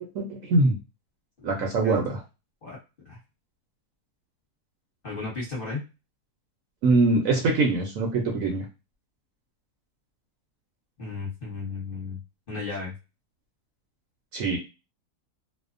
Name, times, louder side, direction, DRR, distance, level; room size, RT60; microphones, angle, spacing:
voice 1, 0.1-0.8 1.4-2.2 6.8-8.6 14.3-14.6, right 3 dB, 65° right, 0 dB, 0.9 m, -23 dB
voice 2, 1.4-2.0 2.6-2.8 3.1-3.2 5.0-5.8 11.0-12.2 12.5-12.9, left 4 dB, 40° left, -5 dB, 1.0 m, -34 dB
2.7 x 2.0 x 2.5 m, 0.28 s
omnidirectional pair, 1.7 m